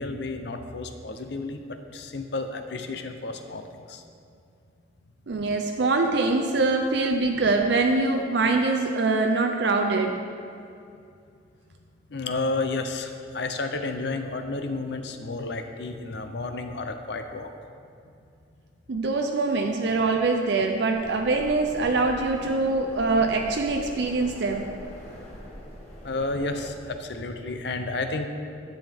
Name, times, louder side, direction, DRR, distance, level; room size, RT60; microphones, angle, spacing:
voice 1, 0.0-4.0 12.1-17.5 26.0-28.3, left 3 dB, 60° left, 7 dB, 0.6 m, -31 dB
voice 2, 5.3-10.2 18.9-24.7, right 3 dB, 60° right, 3 dB, 0.5 m, -24 dB
sound 1, 20.9-26.8, equal, 35° left, 1.6 m, -43 dB
10.5 x 7.8 x 3.5 m, 2.5 s
head